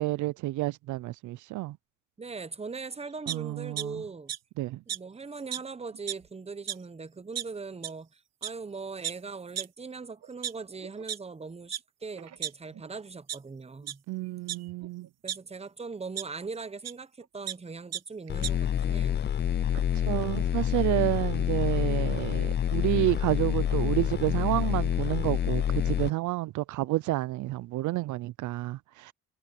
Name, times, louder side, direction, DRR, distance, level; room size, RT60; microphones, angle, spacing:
voice 1, 0.0-1.8 3.3-4.0 4.6-4.8 14.1-15.1 19.7-29.1, right 18 dB, 75° right, 0.5 m, -30 dB
voice 2, 2.2-4.3 4.9-14.0 15.2-19.3, right 4 dB, 20° right, 1.0 m, -40 dB
sound 1, 3.3-3.8 4.3-4.4 4.9-5.0 5.5-5.6 5.9-6.3 6.7-6.8 7.4-7.5 7.8-7.9 8.4-8.5 9.0-9.1 9.6-9.7 10.2-11.2 11.7-11.8 12.2-12.9 13.3-13.4 13.8-13.9 14.5-15.4 16.2-16.3 16.8-16.9 17.2-17.5 17.9-18.0 18.3-18.5, right 10 dB, 60° right, 1.2 m, -34 dB
sound 2, 18.3-26.1, left 10 dB, 35° left, 0.4 m, -27 dB
cardioid pair, 90°, 30 cm